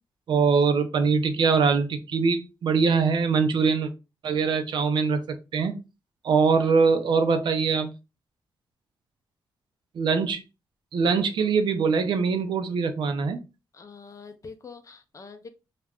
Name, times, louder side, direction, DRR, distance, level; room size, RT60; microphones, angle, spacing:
voice 1, 0.3-3.9 4.2-5.8 6.2-7.9 9.9-10.4 10.9-13.4, right 5 dB, 65° right, 0.5 m, -23 dB
voice 2, 13.7-15.5, left 4 dB, 40° left, 0.5 m, -44 dB
2.4 x 2.2 x 3.4 m
cardioid pair, 90°, 8 cm